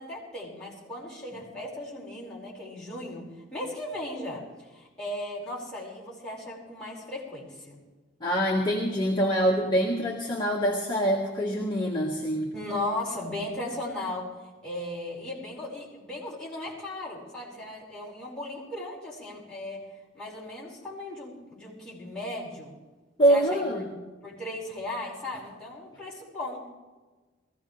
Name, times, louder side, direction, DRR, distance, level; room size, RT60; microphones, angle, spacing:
voice 1, 0.0-7.8 12.5-19.9 20.1-22.7 23.3-23.8 24.2-26.7, left 1 dB, 5° left, -7 dB, 5.6 m, -37 dB
voice 2, 8.2-12.5 23.2-23.9, equal, 25° left, -4 dB, 1.8 m, -25 dB
21.5 x 16.0 x 3.4 m, 1.3 s
head